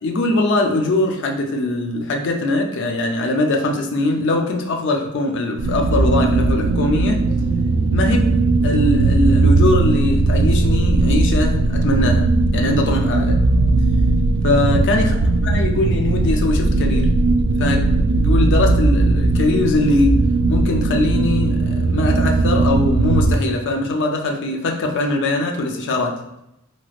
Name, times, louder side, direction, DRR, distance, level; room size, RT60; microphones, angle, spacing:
voice 1, 0.0-7.2 7.9-8.3 8.6-12.3 12.5-13.4 14.4-17.1 17.6-17.8 18.2-20.2 20.5-26.2, left 2 dB, 55° left, 2 dB, 0.4 m, -21 dB
sound 1, 5.6-23.3, right 3 dB, 65° right, 0.3 m, -18 dB
3.0 x 2.9 x 2.4 m, 0.85 s
head